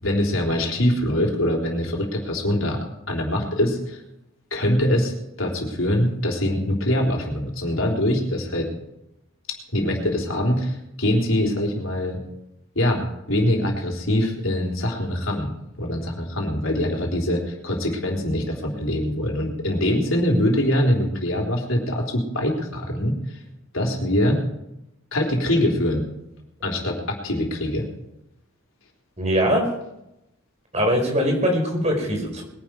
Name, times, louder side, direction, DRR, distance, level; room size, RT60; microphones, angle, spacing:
voice 1, 0.0-2.8 3.1-4.0 4.5-8.7 9.7-12.2 12.8-13.0 13.3-23.4 23.7-24.4 25.1-26.1 26.6-27.9, left 1 dB, 75° left, 0 dB, 3.7 m, -23 dB
voice 2, 29.2-29.6 30.7-32.4, equal, 35° right, 1 dB, 4.9 m, -21 dB
21.5 x 11.5 x 4.7 m, 0.86 s
head